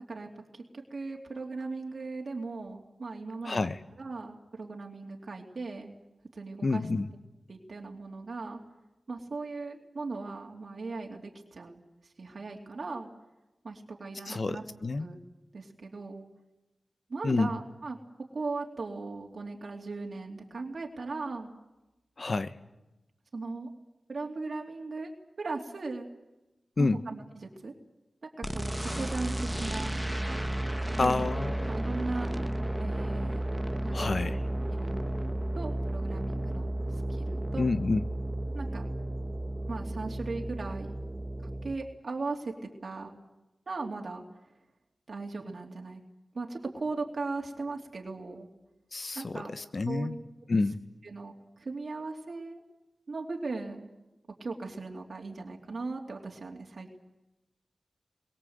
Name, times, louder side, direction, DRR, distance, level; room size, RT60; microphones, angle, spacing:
voice 1, 0.1-0.6 0.9-3.7 4.0-6.0 6.3-6.8 7.5-8.6 9.1-11.8 12.2-13.1 13.6-14.6 15.0-15.2 15.5-16.2 17.1-18.0 18.3-21.5 23.3-23.7 24.1-26.1 26.8-27.7 28.4-30.0 31.0-31.4 31.7-32.3 32.8-33.4 33.8-34.4 34.7-35.0 35.5-37.7 38.5-38.9 39.7-41.0 41.4-42.5 42.8-43.1 43.7-44.2 45.1-46.0 46.3-48.5 49.1-49.6 49.9-50.1 51.0-52.6 53.1-53.9 54.4-57.0, right 3 dB, 60° right, 1 dB, 2.8 m, -38 dB
voice 2, 3.4-3.8 6.6-7.1 14.2-15.1 17.2-17.6 22.2-22.6 26.8-27.0 31.0-31.7 33.9-34.4 37.6-38.1 48.9-50.2 50.5-50.8, left 3 dB, 50° left, 12 dB, 1.2 m, -29 dB
sound 1, 28.4-41.8, right 1 dB, 5° right, 1.2 m, -33 dB
27.5 x 22.5 x 8.0 m, 1.0 s
wide cardioid pair, 75°, 0 cm